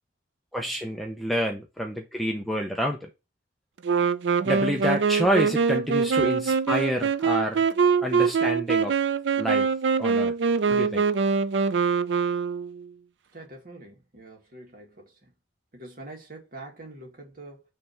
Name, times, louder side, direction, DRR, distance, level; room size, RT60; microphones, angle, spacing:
voice 1, 0.5-3.1 4.4-7.7 8.0-9.0 9.4-9.7 10.0-10.3 10.7-11.0, equal, ahead, 0.7 m, -28 dB
Wind instrument woodwind instrument, 3.8-12.9, right 5 dB, 85° right, 0.5 m, -24 dB
voice 2, 13.3-15.3 15.7-17.6, right 2 dB, 55° right, 2.0 m, -45 dB
5.6 x 3.4 x 5.7 m
head